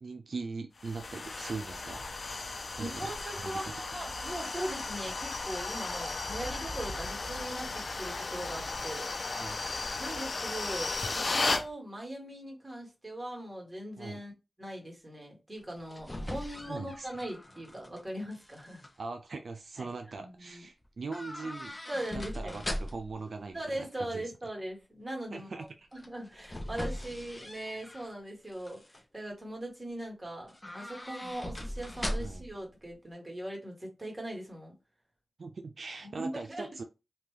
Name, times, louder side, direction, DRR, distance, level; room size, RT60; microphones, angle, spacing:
voice 1, 0.0-2.1 2.7-3.1 3.4-3.6 9.3-9.6 14.0-14.2 16.7-17.1 19.0-21.7 22.1-24.2 25.3-25.9 32.2-32.4 35.4-36.8, right 4 dB, 80° right, 0.3 m, -41 dB
sound 1, 0.8-11.7, left 3 dB, 70° left, 0.4 m, -35 dB
voice 2, 2.8-9.1 10.0-14.3 14.6-18.8 19.8-20.7 21.9-22.6 23.5-34.7 36.0-36.8, right 1 dB, 25° right, 1.5 m, -40 dB
sound 2, 15.6-18.0 18.3-18.9 21.1-23.2 26.0-28.1 28.5-29.0 30.5-32.6 32.8-32.9, left 1 dB, 25° left, 0.6 m, -40 dB
2.8 x 2.2 x 3.1 m
cardioid pair, 50°, 0 cm